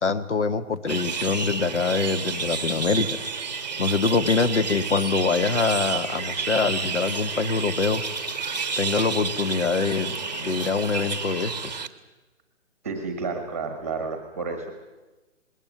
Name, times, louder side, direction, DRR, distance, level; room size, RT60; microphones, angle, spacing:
voice 1, 0.0-3.1 3.8-8.0 8.8-10.2 10.4-11.7, left 4 dB, 65° left, 12 dB, 1.5 m, -24 dB
sound 1, 0.9-11.9, right 5 dB, 35° right, 0.9 m, -30 dB
voice 2, 12.8-14.7, right 4 dB, 10° right, 5 dB, 1.2 m, -31 dB
20.5 x 17.0 x 9.4 m, 1.1 s
hypercardioid pair, 180°, 38 cm